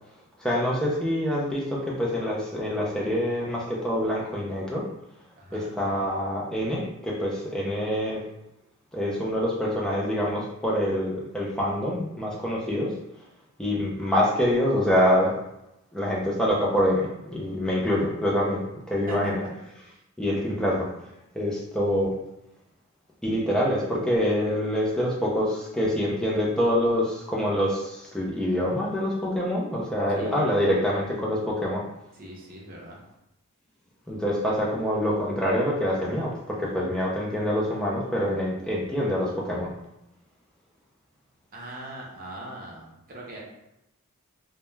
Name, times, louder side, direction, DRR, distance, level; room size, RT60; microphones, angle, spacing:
voice 1, 0.4-4.9 5.5-8.2 8.9-12.9 13.6-15.4 15.9-19.4 20.2-20.9 21.4-22.2 23.2-31.8 34.1-39.7, equal, 5° left, -4 dB, 0.4 m, -26 dB
voice 2, 5.4-5.7 19.1-19.3 19.8-20.0 30.1-30.5 32.1-33.0 41.5-43.4, right 1 dB, 40° right, -4 dB, 0.6 m, -40 dB
2.2 x 2.1 x 3.1 m, 0.87 s
head